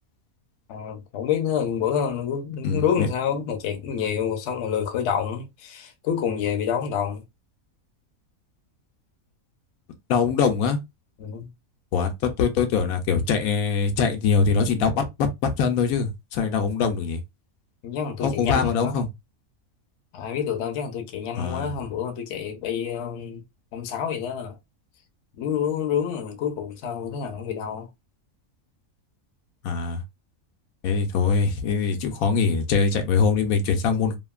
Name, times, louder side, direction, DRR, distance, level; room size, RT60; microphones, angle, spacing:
voice 1, 0.7-7.2 11.2-11.5 17.8-19.0 20.1-23.4 23.7-24.6 25.4-27.9, left 8 dB, 65° left, 0.8 m, -28 dB
voice 2, 2.6-3.1 10.1-10.8 11.9-17.2 18.2-19.1 21.3-21.7 29.6-30.0 30.8-34.2, left 5 dB, 85° left, 1.1 m, -23 dB
2.8 x 2.5 x 2.3 m
omnidirectional pair, 1.5 m